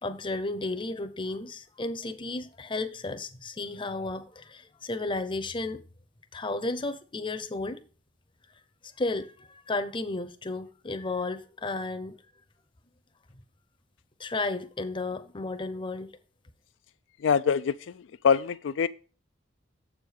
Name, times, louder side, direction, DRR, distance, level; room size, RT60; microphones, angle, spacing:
voice 1, 0.0-5.8 6.3-7.8 9.0-12.2 14.2-16.2, left 2 dB, 25° left, 0.7 m, -33 dB
voice 2, 17.2-18.9, left 6 dB, 70° left, 0.4 m, -25 dB
7.5 x 5.0 x 6.4 m
head